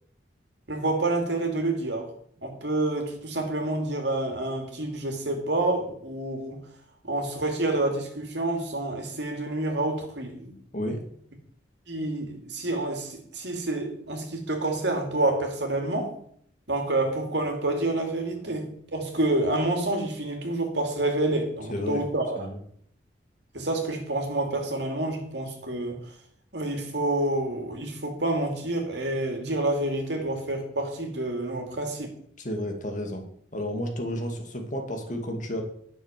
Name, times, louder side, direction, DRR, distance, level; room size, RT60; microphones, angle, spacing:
voice 1, 0.7-2.1 2.4-6.6 7.0-10.6 11.9-16.1 16.7-22.5 23.5-26.0 26.5-32.1, right 2 dB, 65° right, 3 dB, 2.7 m, -28 dB
voice 2, 10.7-11.0 21.7-22.0 22.4-22.6 32.4-33.2 33.5-35.6, equal, 45° left, 3 dB, 2.1 m, -31 dB
10.5 x 6.8 x 7.4 m, 0.65 s
head